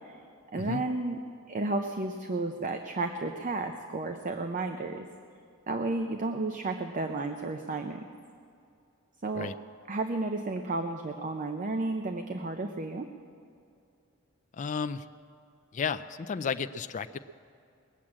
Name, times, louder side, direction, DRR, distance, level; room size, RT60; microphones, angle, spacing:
voice 1, 0.5-1.2 1.5-5.1 5.7-8.1 9.2-9.5 9.9-13.1, right 2 dB, 35° right, 5 dB, 0.6 m, -32 dB
voice 2, 14.6-15.0 15.7-17.2, left 6 dB, 35° left, 9 dB, 0.4 m, -33 dB
20.5 x 7.5 x 8.6 m, 2.5 s
head